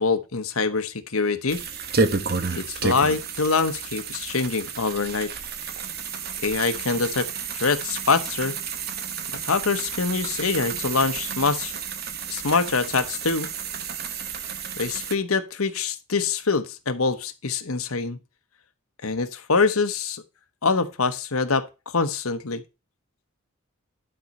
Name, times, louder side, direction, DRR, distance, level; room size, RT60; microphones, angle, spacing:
voice 1, 0.0-1.6 2.6-5.3 6.4-7.3 7.5-8.6 9.4-11.7 12.3-13.5 14.8-18.2 19.0-20.2 20.6-22.6, left 4 dB, 80° left, 1.0 m, -24 dB
sound 1, 1.5-15.1, right 5 dB, 45° right, 1.0 m, -31 dB
11.5 x 4.3 x 5.3 m
head